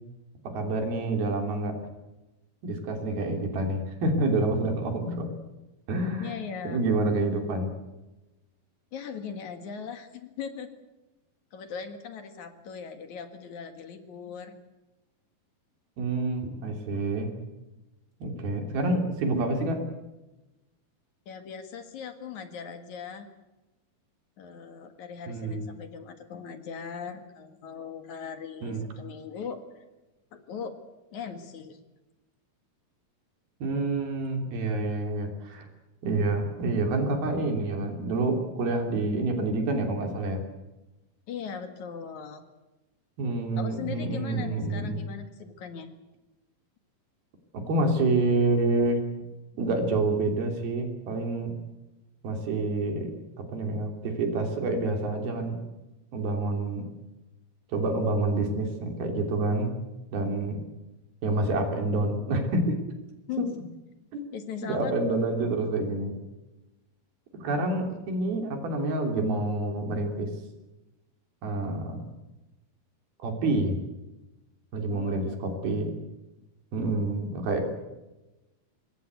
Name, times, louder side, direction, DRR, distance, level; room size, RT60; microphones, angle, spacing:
voice 1, 0.5-1.8 2.6-5.3 5.9-6.4 6.7-7.7 16.0-17.3 18.2-19.8 25.3-25.7 28.6-28.9 33.6-35.7 36.0-40.4 43.2-45.0 47.7-49.0 49.6-51.6 52.2-53.1 53.4-55.6 56.1-56.9 57.7-59.7 60.1-60.6 61.2-62.8 63.4-63.5 64.1-64.2 64.6-66.1 67.3-70.3 71.4-72.0 73.2-73.8 74.7-76.0 76.7-77.6, right 2 dB, 85° right, 4 dB, 5.1 m, -28 dB
voice 2, 6.2-6.8 8.9-10.8 11.5-14.6 21.3-23.3 24.4-29.8 30.3-30.8 31.1-31.8 41.3-42.5 43.6-45.9 63.3-63.6 64.3-65.2 74.9-75.4, left 6 dB, 60° left, 8 dB, 2.9 m, -39 dB
25.5 x 21.0 x 8.3 m, 1.1 s
omnidirectional pair, 4.2 m